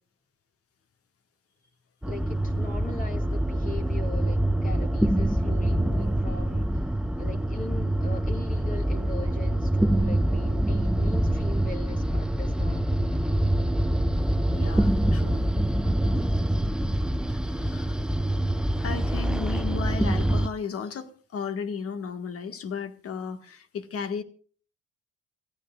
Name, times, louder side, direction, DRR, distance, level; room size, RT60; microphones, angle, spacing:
voice 1, 2.0-12.9, left 2 dB, 25° left, 4 dB, 2.7 m, -40 dB
sound 1, 2.0-20.5, right 1 dB, 5° right, 0.6 m, -25 dB
voice 2, 14.5-15.5 16.0-16.1 17.3-18.0 18.7-24.2, left 6 dB, 50° left, 9 dB, 1.7 m, -35 dB
28.0 x 10.0 x 2.4 m, 0.43 s
hypercardioid pair, 55°, 30 cm